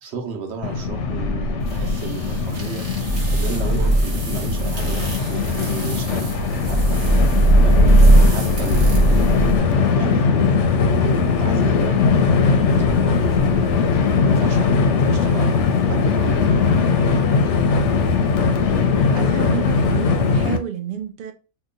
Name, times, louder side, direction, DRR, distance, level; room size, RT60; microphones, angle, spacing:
voice 1, 0.0-2.9 3.3-7.0 7.6-10.5 11.0-16.7, right 6 dB, 60° right, 1.0 m, -34 dB
Train, 0.6-20.6, left 5 dB, 65° left, 0.8 m, -20 dB
sound 1, 1.7-9.6, right 1 dB, 40° right, 1.1 m, -18 dB
voice 2, 19.1-21.3, right 10 dB, 75° right, 0.4 m, -29 dB
2.9 x 2.2 x 3.7 m
omnidirectional pair, 1.4 m